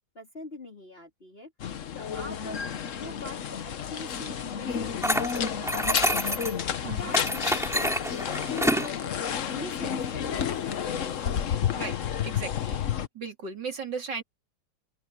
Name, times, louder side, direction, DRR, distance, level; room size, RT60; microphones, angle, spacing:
voice 1, 0.1-1.5 1.9-11.8, left 2 dB, 30° left, 3.9 m, -44 dB
sound 1, 1.6-13.1, left 8 dB, 55° left, 1.1 m, -31 dB
sound 2, 5.0-6.6 7.1-8.9, equal, ahead, 2.7 m, -27 dB
voice 2, 11.7-14.2, right 5 dB, 80° right, 3.7 m, -37 dB
open air
omnidirectional pair, 1.9 m